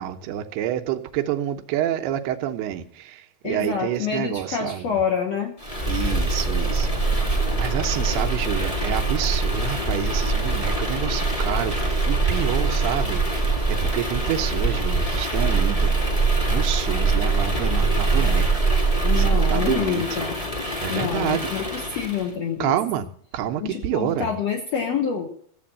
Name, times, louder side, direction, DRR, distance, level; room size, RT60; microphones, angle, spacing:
voice 1, 0.0-5.0 5.9-15.9 16.4-18.6 19.1-20.0 20.8-21.5 22.6-23.1 23.3-24.3, right 10 dB, 85° right, 2.9 m, -28 dB
voice 2, 3.4-5.6 19.0-20.4 20.9-22.8 23.6-25.3, left 7 dB, 65° left, 1.7 m, -27 dB
sound 1, 5.6-22.3, right 3 dB, 20° left, 0.9 m, -23 dB
14.0 x 7.8 x 7.4 m
omnidirectional pair, 4.5 m